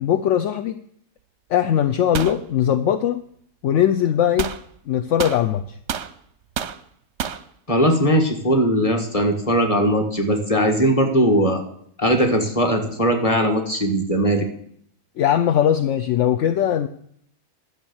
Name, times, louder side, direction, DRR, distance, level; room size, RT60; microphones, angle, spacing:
voice 1, 0.0-0.8 1.5-3.2 3.6-4.5 4.9-5.8 15.2-16.9, left 10 dB, 65° left, 8 dB, 0.8 m, -20 dB
sound 1, 2.1-2.4 4.4-4.6 5.2-6.1 6.6-6.8 7.2-7.4, right 8 dB, 55° right, 0.8 m, -28 dB
voice 2, 7.7-11.6 12.0-14.4, equal, 20° left, 3 dB, 1.7 m, -19 dB
11.5 x 6.8 x 7.1 m, 0.67 s
omnidirectional pair, 1.7 m